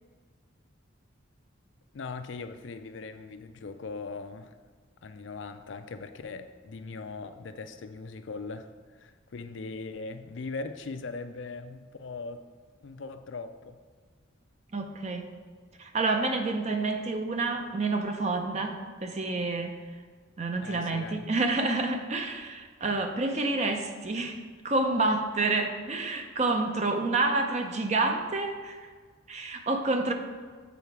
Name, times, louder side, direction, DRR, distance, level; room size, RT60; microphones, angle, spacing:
voice 1, 1.9-4.5 5.0-8.7 9.0-12.4 12.8-13.8 20.6-21.3, left 4 dB, 70° left, 9 dB, 0.5 m, -40 dB
voice 2, 14.7-15.3 15.8-19.8 20.4-24.4 24.6-28.9 29.3-30.1, right 3 dB, 35° right, 5 dB, 0.5 m, -28 dB
7.1 x 4.6 x 4.7 m, 1.5 s
head